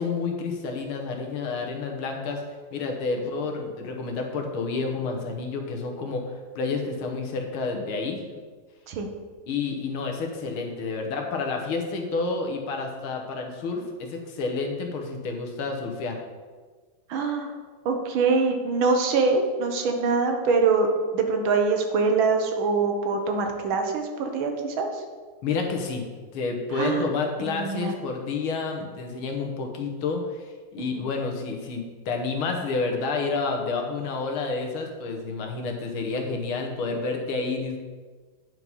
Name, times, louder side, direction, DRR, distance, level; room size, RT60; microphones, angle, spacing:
voice 1, 0.0-2.4 2.7-8.2 9.5-16.2 25.4-26.1 26.3-37.8, left 4 dB, 80° left, 2 dB, 1.9 m, -29 dB
voice 2, 17.1-17.5 17.8-20.9 21.1-25.0 26.7-27.1 27.4-27.9 30.9-31.1, right 4 dB, 70° right, 4 dB, 1.7 m, -24 dB
9.6 x 4.7 x 5.4 m, 1.4 s
omnidirectional pair, 2.3 m